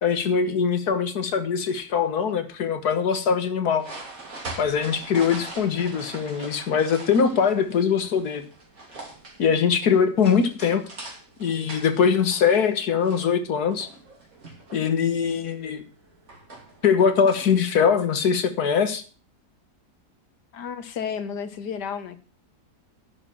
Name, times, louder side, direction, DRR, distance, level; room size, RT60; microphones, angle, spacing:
voice 1, 0.0-3.8 4.6-8.4 9.4-10.8 11.4-13.9 14.7-15.8 16.8-19.0, left 6 dB, 70° left, 10 dB, 1.8 m, -22 dB
sound 1, 3.8-17.7, right 2 dB, 55° right, 3.2 m, -43 dB
voice 2, 20.5-22.2, left 7 dB, 90° left, 11 dB, 1.8 m, -32 dB
11.0 x 6.6 x 7.4 m, 0.38 s
omnidirectional pair, 1.8 m